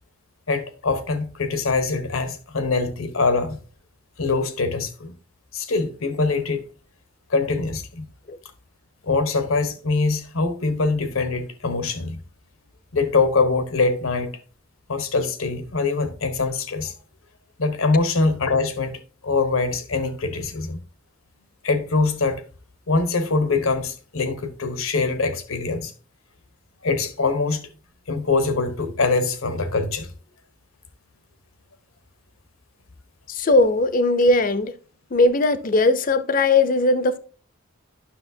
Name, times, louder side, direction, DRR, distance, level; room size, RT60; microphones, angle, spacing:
voice 1, 0.5-3.6 4.2-5.1 5.5-6.7 7.3-8.1 9.0-12.2 12.9-14.3 14.9-16.9 17.6-20.8 21.6-22.4 22.9-25.9 26.8-27.7 28.1-30.1, left 3 dB, 75° left, 1.0 m, -23 dB
voice 2, 33.3-34.7 35.1-37.2, left 2 dB, 40° left, 0.5 m, -19 dB
9.9 x 6.3 x 2.7 m
head